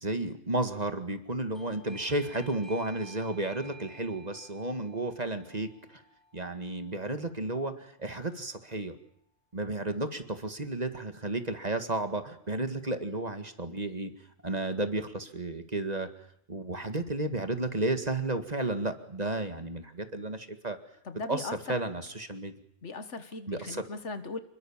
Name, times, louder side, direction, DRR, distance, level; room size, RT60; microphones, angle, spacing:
voice 1, 0.0-6.0 6.3-9.0 9.5-14.1 14.4-16.1 16.5-20.8 21.3-22.5 23.5-23.8, right 2 dB, 35° right, 8 dB, 2.0 m, -32 dB
Doorbell, 1.5-8.0, right 2 dB, ahead, 5.0 m, -53 dB
voice 2, 21.1-21.6 22.8-24.4, left 3 dB, 70° left, 10 dB, 1.8 m, -38 dB
27.0 x 22.0 x 7.3 m, 0.68 s
omnidirectional pair, 1.3 m